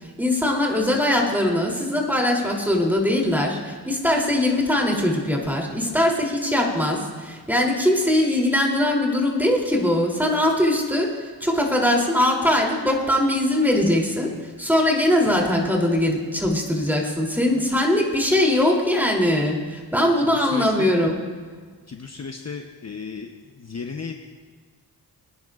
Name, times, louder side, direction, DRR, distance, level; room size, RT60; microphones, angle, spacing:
voice 1, 0.0-21.2, left 1 dB, 5° right, -1 dB, 3.1 m, -21 dB
voice 2, 15.3-15.7 20.2-20.9 21.9-24.2, left 5 dB, 40° left, 3 dB, 0.9 m, -35 dB
23.5 x 10.5 x 2.5 m, 1.5 s
cardioid pair, 65°, 42 cm